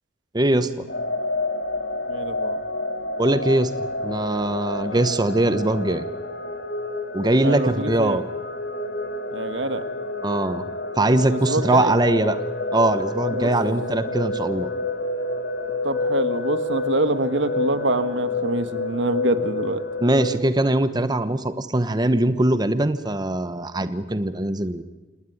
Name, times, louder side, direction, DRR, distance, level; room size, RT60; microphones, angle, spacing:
voice 1, 0.3-0.9 3.2-3.7 4.0-6.0 7.1-8.2 10.2-10.6 11.0-12.4 12.7-14.7 20.0-24.8, right 1 dB, 25° right, 12 dB, 1.0 m, -21 dB
sound 1, 0.9-20.4, left 2 dB, 90° left, 2.7 m, -29 dB
voice 2, 2.1-2.6 4.8-5.0 7.4-8.2 9.3-9.8 11.3-12.0 13.3-13.5 15.8-19.8, right 2 dB, 90° right, 11 dB, 1.6 m, -25 dB
27.0 x 19.5 x 9.4 m, 1.2 s
head